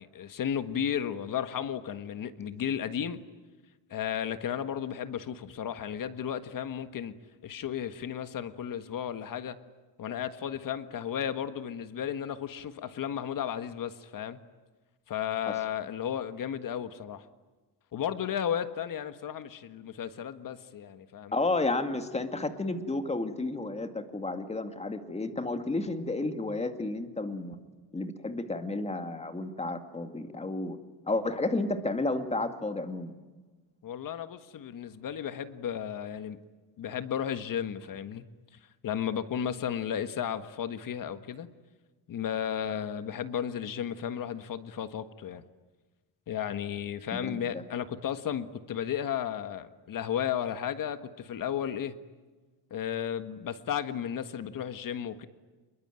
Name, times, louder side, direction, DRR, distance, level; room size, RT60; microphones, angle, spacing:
voice 1, 0.0-3.2 3.9-7.1 7.4-9.6 10.0-14.4 15.1-17.2 17.9-21.3 33.8-36.4 36.8-38.2 38.8-41.5 42.1-45.4 46.3-51.9 52.7-55.3, left 9 dB, 50° left, 11 dB, 1.6 m, -34 dB
voice 2, 21.3-27.6 27.9-30.8 31.1-33.1 47.2-47.6, left 2 dB, 15° left, 7 dB, 2.3 m, -32 dB
27.0 x 22.5 x 9.1 m, 1.3 s
cardioid pair, 145°, 41 cm